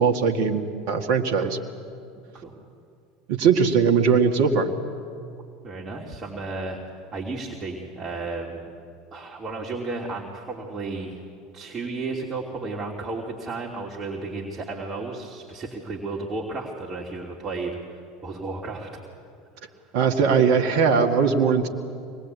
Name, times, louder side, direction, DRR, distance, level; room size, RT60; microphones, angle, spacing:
voice 1, 0.0-1.6 3.3-4.7 19.9-21.7, right 6 dB, 60° right, 4 dB, 1.9 m, -20 dB
voice 2, 5.6-6.8 7.1-8.7 9.1-11.2 11.5-18.9 19.6-19.7, right 3 dB, 30° right, -2 dB, 3.1 m, -33 dB
25.0 x 20.5 x 8.4 m, 2.4 s
hypercardioid pair, 80°, 0 cm